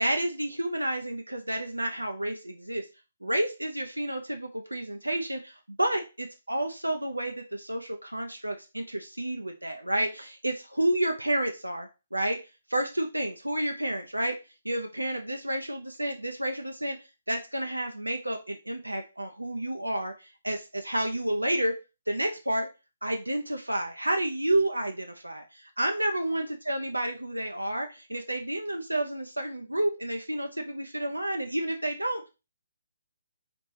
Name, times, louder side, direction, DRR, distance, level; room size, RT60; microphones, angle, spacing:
voice 1, 0.0-2.9 3.2-12.4 12.7-14.4 14.6-17.0 17.3-21.8 22.1-22.7 23.0-32.2, right 1 dB, 90° right, 4 dB, 0.4 m, -30 dB
4.1 x 3.0 x 3.2 m, 0.29 s
figure-of-eight pair, 135°, 0 cm